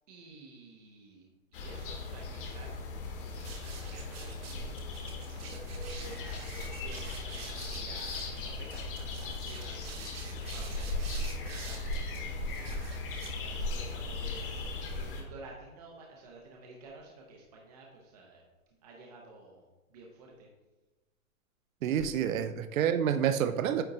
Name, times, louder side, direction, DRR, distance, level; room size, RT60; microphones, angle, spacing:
voice 1, 0.1-1.3 1.5-18.4 18.8-20.5, right 2 dB, 30° right, 0.7 m, -52 dB
sound 1, 1.5-15.2, left 3 dB, 40° left, 1.2 m, -38 dB
sound 2, 3.4-13.9, right 3 dB, 45° right, 1.3 m, -45 dB
voice 2, 21.8-23.8, right 9 dB, 70° right, 0.6 m, -28 dB
9.0 x 3.7 x 3.9 m
hypercardioid pair, 165°, 42 cm